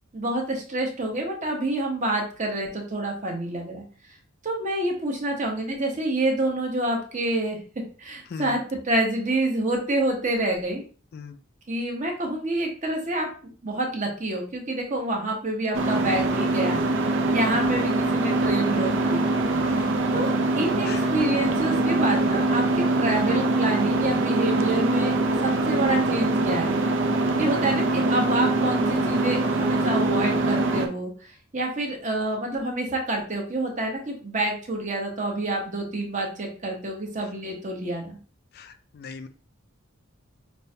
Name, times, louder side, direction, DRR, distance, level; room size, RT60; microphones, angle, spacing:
voice 1, 0.1-3.8 4.4-7.6 8.0-10.8 11.7-13.3 13.6-16.8 17.3-19.3 20.1-20.3 20.6-25.1 25.4-26.8 27.4-38.2, right 1 dB, 40° right, 1 dB, 0.9 m, -27 dB
voice 2, 8.3-8.6 11.1-11.4 19.7-19.9 20.8-21.1 38.5-39.3, left 6 dB, 50° left, 9 dB, 0.3 m, -39 dB
sound 1, 15.7-30.9, right 2 dB, 65° right, 0.5 m, -23 dB
5.2 x 2.2 x 2.7 m, 0.40 s
head